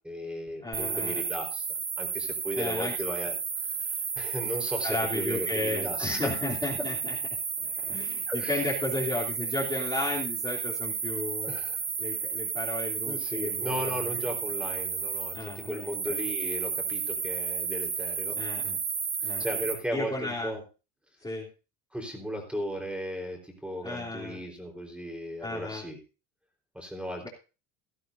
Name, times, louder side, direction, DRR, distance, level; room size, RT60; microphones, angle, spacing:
voice 1, 0.0-1.7 2.0-6.4 8.3-8.7 11.4-11.8 13.1-18.4 19.2-20.6 21.9-26.0 26.7-27.3, equal, 5° right, 3 dB, 4.1 m, -36 dB
voice 2, 0.6-1.2 2.5-2.9 4.8-7.2 7.6-11.5 12.0-14.2 15.3-16.2 18.4-18.8 19.2-19.5 19.9-20.6 21.2-21.5 23.8-24.4 25.4-25.8 27.2-27.3, left 2 dB, 15° left, -6 dB, 3.2 m, -34 dB
sound 1, 0.7-19.7, right 6 dB, 40° right, 3.4 m, -32 dB
17.0 x 11.5 x 2.7 m, 0.32 s
supercardioid pair, 105°, 36 cm